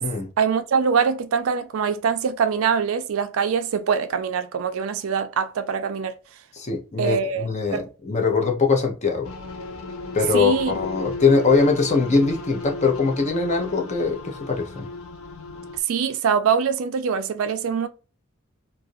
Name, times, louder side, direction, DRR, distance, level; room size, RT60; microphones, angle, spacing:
voice 1, 0.4-6.1 7.0-7.9 10.3-10.7 15.9-17.9, right 6 dB, 70° right, 0.4 m, -23 dB
voice 2, 6.5-9.3 10.1-14.9, left 4 dB, 35° left, 0.6 m, -22 dB
sound 1, 9.2-15.8, left 3 dB, 75° left, 0.6 m, -36 dB
2.4 x 2.0 x 2.5 m
head